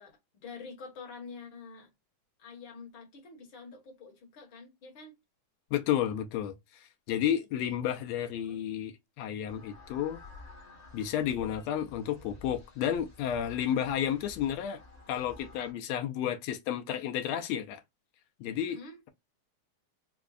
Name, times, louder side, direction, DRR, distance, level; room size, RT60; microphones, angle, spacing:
voice 1, 0.0-1.9 2.4-5.1 7.6-8.0 8.3-8.6 18.7-19.0, left 4 dB, 50° left, 1.8 m, -47 dB
voice 2, 5.7-10.2 10.9-14.8 15.1-17.8 18.4-18.8, left 10 dB, 80° left, 1.6 m, -32 dB
sound 1, 9.5-15.7, left 3 dB, 30° left, 1.4 m, -51 dB
5.0 x 2.3 x 2.4 m
omnidirectional pair, 3.6 m